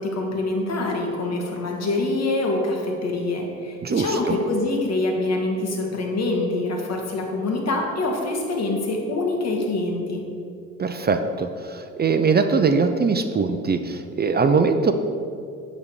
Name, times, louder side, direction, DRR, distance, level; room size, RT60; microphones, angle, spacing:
voice 1, 0.0-10.2, left 2 dB, 60° left, 1 dB, 1.8 m, -25 dB
voice 2, 3.8-4.4 10.8-14.9, right 5 dB, 35° right, 8 dB, 0.6 m, -21 dB
10.0 x 4.2 x 6.9 m, 2.4 s
cardioid pair, 90°, 30 cm